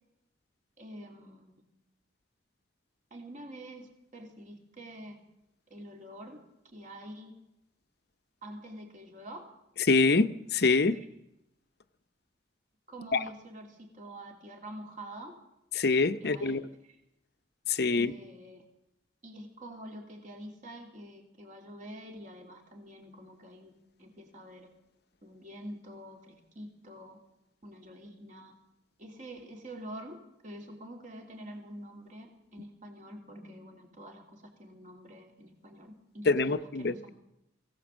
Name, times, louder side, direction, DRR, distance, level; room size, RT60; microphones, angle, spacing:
voice 1, 0.8-1.6 3.1-5.2 5.7-6.4 6.7-7.3 8.4-9.5 10.9-11.1 12.9-15.4 16.2-16.6 17.9-18.6 19.2-23.7 24.0-24.7 25.2-27.2 27.6-28.5 29.0-37.1, right 1 dB, 40° right, 1 dB, 3.1 m, -46 dB
voice 2, 9.9-11.0 13.1-13.2 15.7-16.6 17.7-18.1 36.3-37.1, left 3 dB, 55° left, 11 dB, 0.8 m, -25 dB
22.5 x 17.0 x 7.4 m, 0.86 s
head